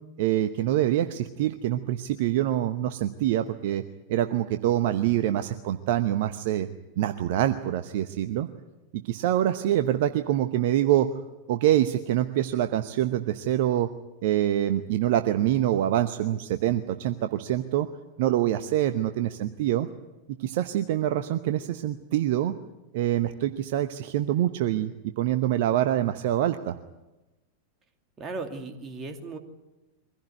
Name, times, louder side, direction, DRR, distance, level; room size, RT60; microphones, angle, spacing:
voice 1, 0.2-3.8 4.1-6.7 7.0-8.5 8.9-11.1 11.5-13.9 14.2-17.9 18.2-19.9 20.4-22.5 22.9-26.8, right 12 dB, 50° right, 10 dB, 0.9 m, -25 dB
voice 2, 28.2-29.4, right 3 dB, 25° right, 5 dB, 2.6 m, -36 dB
23.5 x 16.0 x 9.4 m, 1.1 s
figure-of-eight pair, 90°, 0 cm